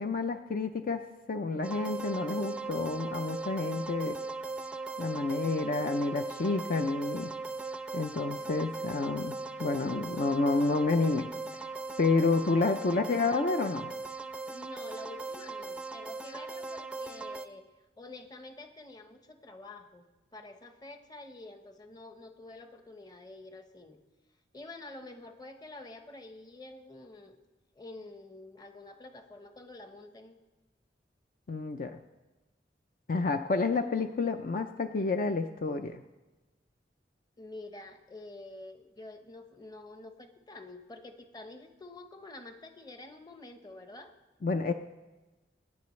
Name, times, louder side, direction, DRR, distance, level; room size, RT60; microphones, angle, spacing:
voice 1, 0.0-4.1 5.0-7.3 7.9-9.3 9.6-11.3 12.0-13.9 31.5-32.0 33.1-36.0 44.4-44.7, left 3 dB, 50° left, 7 dB, 0.5 m, -29 dB
sound 1, 1.6-17.5, right 3 dB, 5° right, 0.5 m, -39 dB
voice 2, 14.5-17.7 18.0-20.1 20.3-24.0 24.5-27.4 27.7-30.4 37.4-44.1, left 2 dB, 25° left, 6 dB, 1.0 m, -48 dB
24.5 x 9.6 x 3.2 m, 1.1 s
head